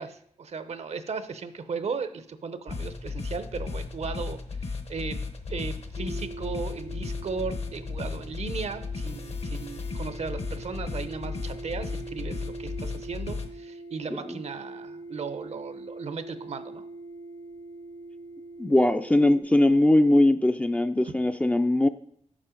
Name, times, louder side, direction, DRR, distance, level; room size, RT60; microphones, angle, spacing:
voice 1, 0.0-5.2 5.5-16.9 21.0-21.1, right 5 dB, 60° right, 11 dB, 0.6 m, -36 dB
sound 1, 2.7-13.5, left 4 dB, 55° left, 0.9 m, -35 dB
sound 2, 5.9-19.4, right 2 dB, 80° left, 2.1 m, -43 dB
voice 2, 18.6-21.9, left 1 dB, 10° left, 8 dB, 0.3 m, -21 dB
7.4 x 5.4 x 5.0 m, 0.69 s
wide cardioid pair, 105°, 12 cm